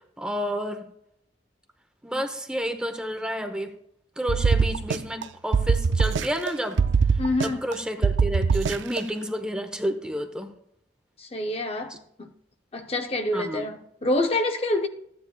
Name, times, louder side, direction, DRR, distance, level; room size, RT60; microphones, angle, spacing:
voice 1, 0.2-0.9 2.0-3.7 4.2-6.8 7.4-10.5 11.9-12.0 13.3-13.7, equal, 5° right, 0.8 m, -30 dB
sound 1, 4.3-5.2 5.5-6.5 6.8-7.7 8.0-9.0, right 5 dB, 85° right, 0.4 m, -22 dB
voice 2, 7.2-7.6 11.2-12.3 12.7-14.9, left 2 dB, 30° left, 0.6 m, -27 dB
14.5 x 9.4 x 2.3 m
head